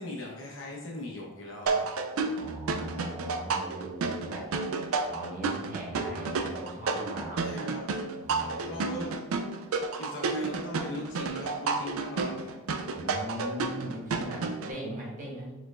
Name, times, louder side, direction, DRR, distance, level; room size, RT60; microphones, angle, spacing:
voice 1, 0.0-1.9 7.4-7.8 8.4-9.2 10.0-12.5, left 1 dB, 55° left, -2 dB, 1.1 m, -39 dB
sound 1, 1.7-14.7, right 4 dB, 70° right, 0.4 m, -31 dB
voice 2, 2.2-4.5 5.0-7.4 8.2-9.0 12.9-15.5, equal, 35° right, -3 dB, 1.1 m, -39 dB
4.5 x 4.5 x 2.4 m, 1.1 s
head